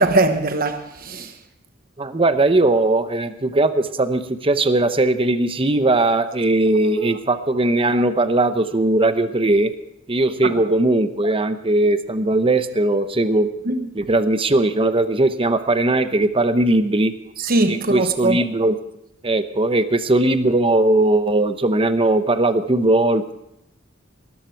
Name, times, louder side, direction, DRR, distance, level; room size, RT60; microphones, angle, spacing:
voice 1, 0.0-1.3 10.4-10.6 13.6-13.9 17.4-18.4, right 2 dB, 45° right, 1.1 m, -20 dB
voice 2, 2.0-9.7 10.1-13.5 13.9-17.1 17.7-18.8 19.2-23.3, right 2 dB, 25° right, 0.9 m, -19 dB
19.5 x 13.5 x 4.6 m
head